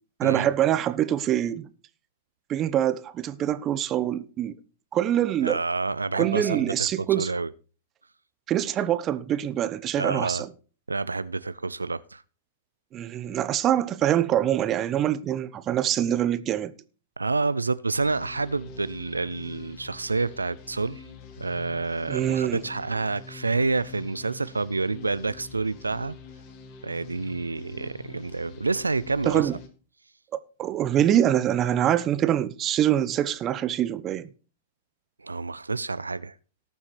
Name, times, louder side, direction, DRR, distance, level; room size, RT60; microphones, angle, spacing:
voice 1, 0.2-1.7 2.5-4.5 4.9-5.6 6.1-7.3 8.5-10.5 12.9-16.7 22.1-22.6 29.2-29.6 30.6-34.3, right 11 dB, 30° right, 1.0 m, -24 dB
voice 2, 5.4-7.5 10.0-10.4 10.9-12.2 17.2-21.0 21.4-26.2 26.8-29.5 35.2-36.3, right 3 dB, 85° right, 0.4 m, -28 dB
sound 1, 18.0-29.7, left 5 dB, 45° left, 2.2 m, -46 dB
18.5 x 7.0 x 3.2 m
figure-of-eight pair, 105°, 0 cm